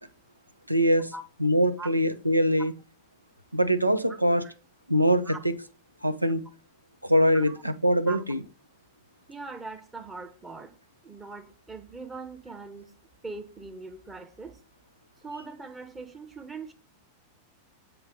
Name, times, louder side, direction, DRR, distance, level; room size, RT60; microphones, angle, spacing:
voice 1, 0.7-1.1 1.4-2.7 3.5-4.4 4.9-5.5 6.0-6.4 7.0-8.4, equal, 85° right, 0.6 m, -23 dB
voice 2, 9.3-10.7 11.0-12.9 13.2-14.6 15.2-16.7, right 3 dB, 15° right, 1.1 m, -41 dB
7.7 x 4.4 x 3.9 m
figure-of-eight pair, 90°, 0 cm